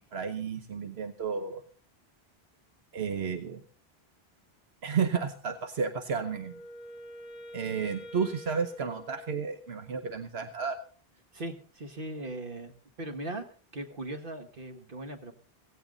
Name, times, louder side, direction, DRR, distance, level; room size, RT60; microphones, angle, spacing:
voice 1, 0.1-1.6 2.9-3.6 4.8-6.5 7.5-10.8, right 6 dB, 80° right, 8 dB, 1.3 m, -32 dB
Wind instrument woodwind instrument, 6.1-10.0, equal, 40° left, 1.0 m, -47 dB
voice 2, 11.3-12.7 13.0-13.5 13.7-15.3, right 1 dB, 60° right, 7 dB, 1.9 m, -39 dB
16.5 x 16.0 x 4.0 m, 0.42 s
omnidirectional pair, 1.0 m